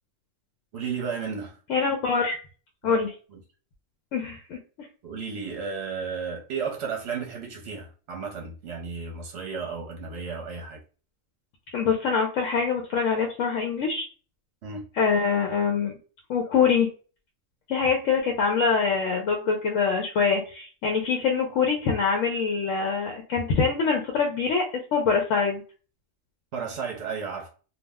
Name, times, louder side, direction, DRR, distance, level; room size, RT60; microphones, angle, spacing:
voice 1, 0.7-1.6 2.8-3.0 3.3-3.4 5.0-10.8 14.6-14.9 26.5-27.5, right 5 dB, 65° right, 0.9 m, -33 dB
voice 2, 1.7-2.4 2.8-3.1 4.1-4.6 11.7-14.1 15.0-15.9 16.3-16.9 17.7-24.7 24.9-25.6, left 5 dB, 85° left, 0.9 m, -24 dB
2.4 x 2.0 x 3.4 m
omnidirectional pair, 1.3 m